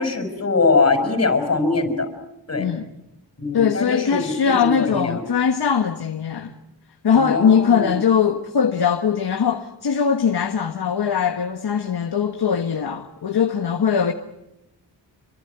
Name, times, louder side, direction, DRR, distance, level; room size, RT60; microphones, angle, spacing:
voice 1, 0.0-2.1 2.5-2.7 3.4-5.2 7.1-8.0, left 3 dB, 35° left, 5.5 m, -22 dB
voice 2, 2.6-2.9 3.5-6.5 7.0-14.1, left 7 dB, 60° left, 1.6 m, -21 dB
28.0 x 23.5 x 8.1 m
wide cardioid pair, 115°, 43 cm